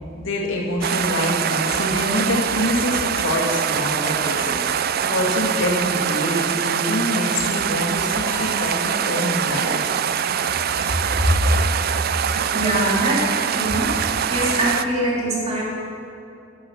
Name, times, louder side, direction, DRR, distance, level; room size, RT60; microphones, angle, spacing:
voice 1, 0.2-4.6 5.1-9.9 11.2-11.4, left 1 dB, 80° left, -3 dB, 2.3 m, -25 dB
sound 1, 0.8-14.8, right 8 dB, 50° right, 0.4 m, -23 dB
Piano, 8.3-10.8, left 2 dB, 15° left, 2.2 m, -40 dB
voice 2, 12.5-14.0 14.3-15.7, right 1 dB, 35° right, -5 dB, 3.1 m, -23 dB
11.0 x 8.7 x 7.1 m, 2.7 s
head